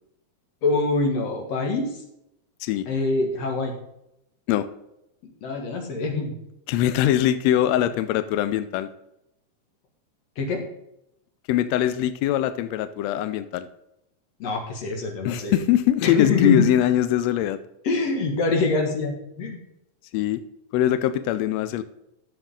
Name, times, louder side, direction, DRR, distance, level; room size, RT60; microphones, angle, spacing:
voice 1, 0.6-1.9 2.9-3.7 5.2-6.3 10.4-10.6 14.4-15.6 16.0-16.7 17.8-19.6, left 3 dB, 55° left, 2 dB, 2.7 m, -24 dB
voice 2, 6.7-8.9 11.5-13.7 15.2-17.6 20.1-20.4 20.7-21.8, left 12 dB, 90° left, 13 dB, 1.5 m, -22 dB
11.5 x 7.2 x 3.7 m, 0.83 s
omnidirectional pair, 3.7 m